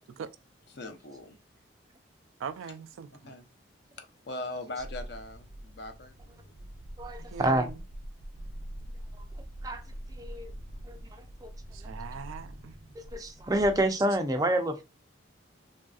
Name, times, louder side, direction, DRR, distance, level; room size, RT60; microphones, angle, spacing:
voice 1, 0.7-1.4 3.2-3.5 4.0-6.7, left 2 dB, 55° left, 0.6 m, -41 dB
voice 2, 2.4-3.1 7.3-7.7 11.9-12.7, right 6 dB, 90° right, 0.3 m, -40 dB
sound 1, 4.8-14.2, equal, 70° right, 0.7 m, -44 dB
voice 3, 7.0-7.7 9.6-9.8 10.2-10.5 10.9-11.5 13.0-14.8, right 1 dB, 20° right, 0.4 m, -28 dB
3.2 x 2.6 x 2.3 m
head